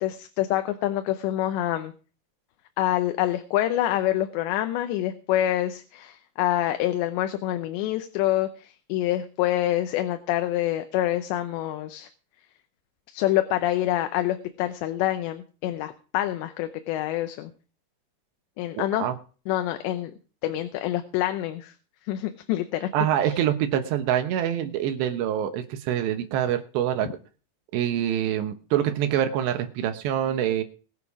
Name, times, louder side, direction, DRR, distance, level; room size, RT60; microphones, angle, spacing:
voice 1, 0.0-1.9 2.8-12.1 13.1-17.5 18.6-19.1 19.5-20.1 20.4-21.7 22.1-22.9, left 13 dB, 90° left, 8 dB, 3.1 m, -26 dB
voice 2, 18.8-19.1 22.9-27.1 27.7-30.6, right 10 dB, 85° right, 7 dB, 3.4 m, -25 dB
21.0 x 7.1 x 4.8 m, 0.38 s
omnidirectional pair, 4.9 m